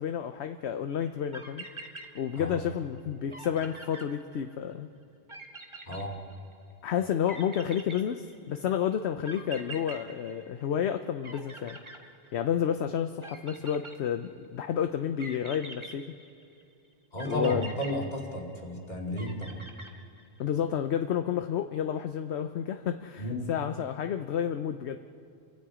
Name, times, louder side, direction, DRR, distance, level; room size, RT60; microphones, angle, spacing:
voice 1, 0.0-1.6 2.1-4.9 6.8-11.8 12.3-16.1 17.2-17.7 20.4-25.0, left 9 dB, 65° left, 8 dB, 0.9 m, -30 dB
sound 1, 1.1-1.2 1.3-2.7 3.0-3.1 3.3-4.7 5.3-6.7 7.3-8.6 9.2-10.9 11.2-12.6 13.2-14.4 15.2-16.6 17.2-18.7 19.2-20.4, right 2 dB, 25° right, 1.8 m, -45 dB
voice 2, 2.4-2.7 5.9-6.2 17.1-19.6 23.2-23.5, equal, 35° left, -1 dB, 2.8 m, -33 dB
29.5 x 24.5 x 5.0 m, 2.5 s
omnidirectional pair, 1.3 m